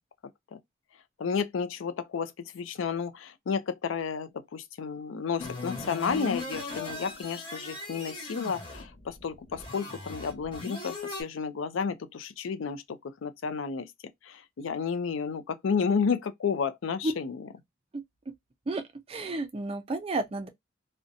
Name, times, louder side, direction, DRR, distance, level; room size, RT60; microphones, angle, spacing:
voice 1, 1.2-12.8 13.2-13.9 14.2-17.5, left 6 dB, 85° left, 0.4 m, -31 dB
sound 1, 5.4-11.2, left 3 dB, 25° left, 0.9 m, -39 dB
voice 2, 19.1-20.5, right 3 dB, 30° right, 0.4 m, -32 dB
2.5 x 2.1 x 2.5 m
head